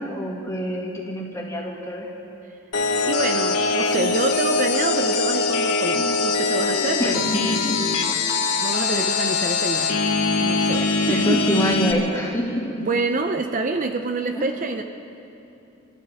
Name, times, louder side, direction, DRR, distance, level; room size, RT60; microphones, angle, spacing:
voice 1, 0.0-2.1 7.0-7.8 8.9-9.1 11.1-12.8 14.3-14.4, equal, 15° left, -2 dB, 2.0 m, -26 dB
sound 1, 2.7-11.9, left 4 dB, 85° left, 1.2 m, -22 dB
voice 2, 3.0-7.3 8.6-10.1 10.4-11.4 12.8-14.8, right 3 dB, 35° right, 5 dB, 0.6 m, -26 dB
29.5 x 13.5 x 3.5 m, 2.9 s
head